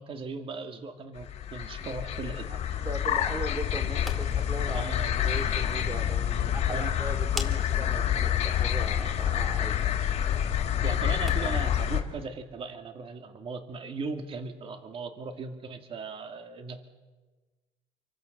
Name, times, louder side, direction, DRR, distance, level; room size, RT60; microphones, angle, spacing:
voice 1, 0.0-2.5 4.6-5.1 6.6-6.9 10.8-16.8, right 4 dB, 40° right, 6 dB, 2.5 m, -38 dB
sound 1, 1.2-12.0, left 10 dB, 50° left, 3.3 m, -28 dB
voice 2, 2.5-4.9 5.2-9.8, right 2 dB, 25° right, 8 dB, 2.8 m, -39 dB
sound 2, 3.7-11.7, left 1 dB, ahead, 3.1 m, -47 dB
28.5 x 24.5 x 6.8 m, 1.3 s
cardioid pair, 120°, 14 cm